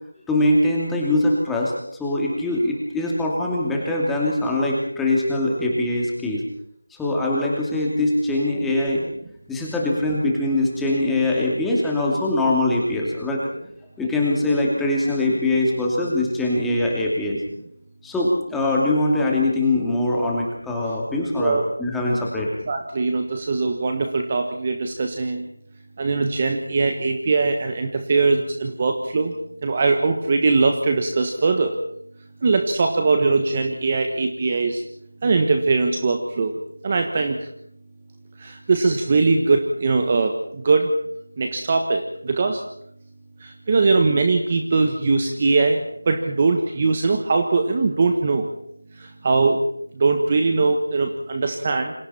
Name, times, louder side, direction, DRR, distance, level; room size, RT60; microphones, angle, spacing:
voice 1, 0.3-1.7 2.0-6.4 6.9-9.0 9.5-13.5 14.0-17.4 18.0-22.5, left 1 dB, 5° left, -3 dB, 2.7 m, -22 dB
voice 2, 22.7-25.5 26.0-29.3 29.6-31.8 32.4-34.8 35.2-36.5 36.8-37.5 38.4-40.9 41.4-42.6 43.4-48.5 49.0-49.6 50.0-51.9, right 3 dB, 25° right, 5 dB, 1.4 m, -21 dB
28.5 x 26.5 x 4.4 m, 0.70 s
figure-of-eight pair, 175°, 0 cm